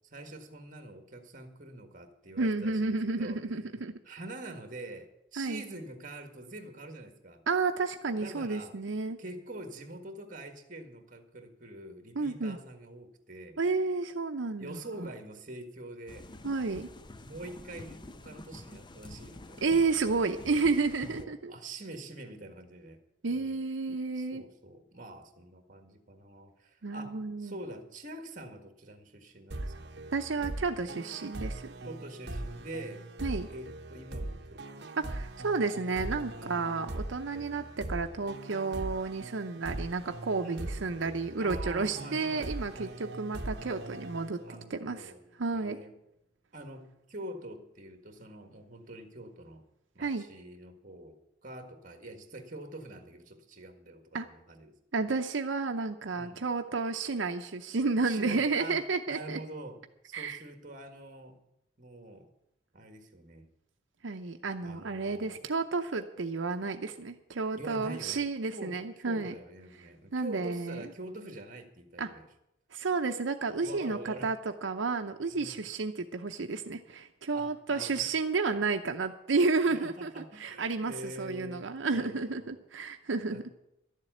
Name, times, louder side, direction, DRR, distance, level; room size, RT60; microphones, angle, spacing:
voice 1, 0.0-3.4 4.0-7.4 8.2-8.7 9.2-13.6 14.6-16.3 17.2-19.6 21.1-23.0 23.3-23.6 24.1-29.9 31.8-33.1 33.5-34.9 36.3-36.9 37.2-37.5 40.4-40.7 41.4-43.0 44.4-45.2 45.5-45.9 46.5-49.6 49.9-54.8 56.1-56.4 58.0-61.4 61.8-62.3 62.7-63.5 64.6-65.4 67.6-72.3 73.6-74.4 75.3-75.7 77.3-78.1 79.7-82.6 83.3-83.5, right 1 dB, 45° right, 7 dB, 1.7 m, -45 dB
voice 2, 2.4-3.9 5.4-5.6 7.5-9.2 12.2-12.6 13.6-14.8 16.4-16.9 19.6-21.5 23.2-24.4 26.8-27.5 30.1-31.7 33.2-33.5 35.0-44.4 44.7-45.1 45.4-45.8 50.0-50.3 54.1-54.3 54.9-59.4 60.1-60.4 64.0-69.3 70.1-70.8 72.0-72.1 72.7-83.4, right 4 dB, 85° right, 6 dB, 0.7 m, -31 dB
sound 1, 16.1-21.2, left 1 dB, 25° left, 0.6 m, -48 dB
sound 2, 29.5-45.0, right 1 dB, 60° right, 1.1 m, -41 dB
12.5 x 7.5 x 9.1 m, 0.84 s
head